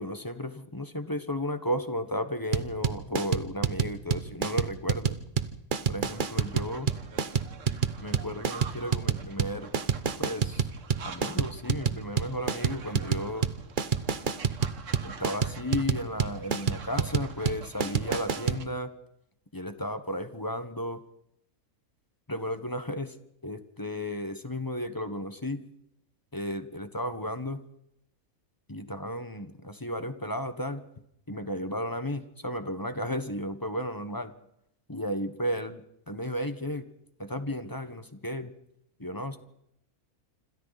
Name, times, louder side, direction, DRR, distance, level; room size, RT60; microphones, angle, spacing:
voice 1, 0.0-5.2 5.9-6.9 8.0-9.7 10.2-10.7 11.0-13.5 15.0-18.9 19.5-21.0 22.3-23.2 23.4-25.6 26.3-27.6 28.7-30.8 31.3-34.3 34.9-35.8 36.1-36.9 37.2-38.5 39.0-39.4, equal, 15° left, 10 dB, 1.1 m, -34 dB
sound 1, 2.5-18.6, right 6 dB, 40° right, 0.9 m, -28 dB
sound 2, 6.0-18.6, right 5 dB, 60° right, 1.6 m, -47 dB
27.0 x 26.5 x 4.1 m, 0.78 s
omnidirectional pair, 1.5 m